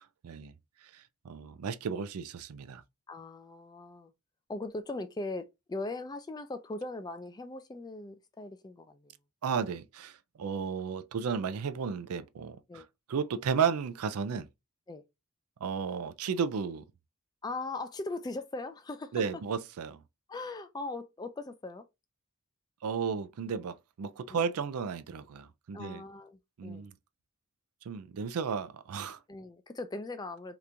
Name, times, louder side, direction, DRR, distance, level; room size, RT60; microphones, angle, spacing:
voice 1, 0.9-2.8 9.4-12.8 13.1-14.5 15.6-16.8 19.1-20.0 22.8-26.0 26.6-26.9 27.9-29.2, right 6 dB, 90° right, 0.4 m, -33 dB
voice 2, 3.1-4.1 4.5-9.1 12.7-12.9 14.9-15.0 17.4-19.4 20.3-21.9 24.3-24.5 25.7-26.9 29.3-30.6, left 2 dB, 20° left, 0.3 m, -39 dB
2.9 x 2.5 x 3.3 m
head